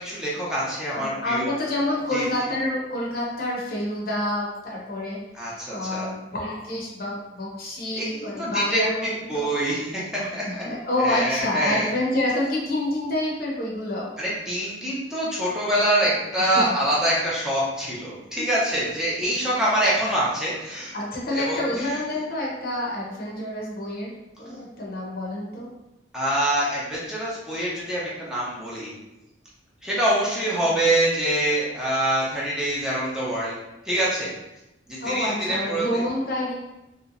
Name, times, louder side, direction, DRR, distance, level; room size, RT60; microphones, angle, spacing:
voice 1, 0.0-1.5 2.1-2.2 5.3-6.1 7.9-10.6 11.0-11.9 14.2-20.9 21.3-21.6 26.1-28.9 29.8-33.6 33.8-34.3 34.9-36.0, right 1 dB, 5° right, -7 dB, 0.6 m, -25 dB
voice 2, 0.9-5.2 5.5-9.6 10.2-14.1 16.4-16.7 18.4-18.5 20.9-25.7 35.0-36.5, left 1 dB, 55° left, -3 dB, 0.7 m, -28 dB
3.1 x 2.9 x 2.5 m, 0.95 s
head